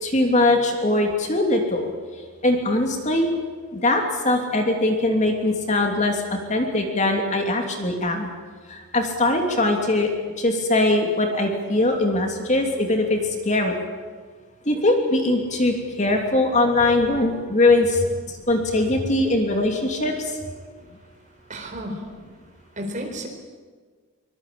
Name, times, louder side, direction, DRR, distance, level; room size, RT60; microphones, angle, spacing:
voice 1, 0.0-1.8 2.4-3.3 3.7-6.2 6.5-8.3 8.9-10.1 10.4-13.2 13.4-13.7 14.7-18.0 18.5-20.1, left 2 dB, 30° left, 3 dB, 2.9 m, -21 dB
voice 2, 21.4-23.3, equal, 35° right, 3 dB, 4.3 m, -34 dB
24.0 x 21.0 x 8.7 m, 1.5 s
head